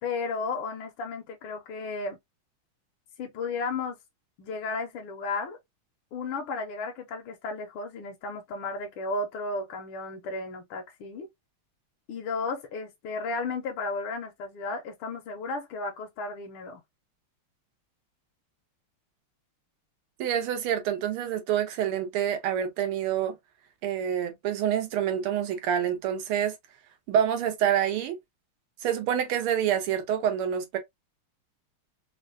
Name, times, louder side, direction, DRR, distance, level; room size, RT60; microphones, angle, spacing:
voice 1, 0.0-2.2 3.2-4.0 4.4-5.6 6.1-11.3 12.1-16.8, left 3 dB, 75° left, 1.5 m, -34 dB
voice 2, 20.2-23.3 23.8-26.5 27.1-28.2 28.8-30.8, right 9 dB, 90° right, 1.7 m, -27 dB
4.1 x 2.2 x 2.5 m
omnidirectional pair, 2.3 m